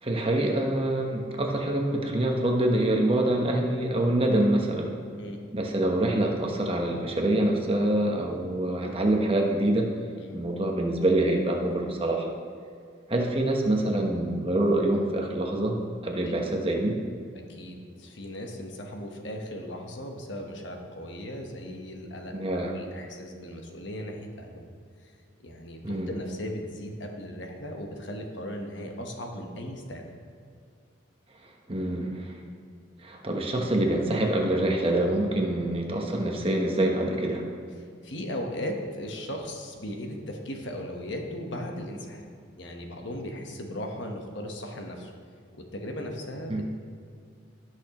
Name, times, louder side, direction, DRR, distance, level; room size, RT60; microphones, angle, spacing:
voice 1, 0.0-4.9 5.5-9.9 10.3-12.3 13.1-15.8 16.0-17.0 22.3-22.7 25.8-26.1 31.7-32.3 33.0-37.5 46.5-46.6, right 1 dB, 25° right, 1 dB, 1.0 m, -25 dB
voice 2, 17.3-24.7 25.0-25.1 25.4-30.1 37.8-42.3 42.6-45.1 45.5-46.6, left 1 dB, 60° left, 2 dB, 1.2 m, -37 dB
16.5 x 6.3 x 3.0 m, 2.2 s
head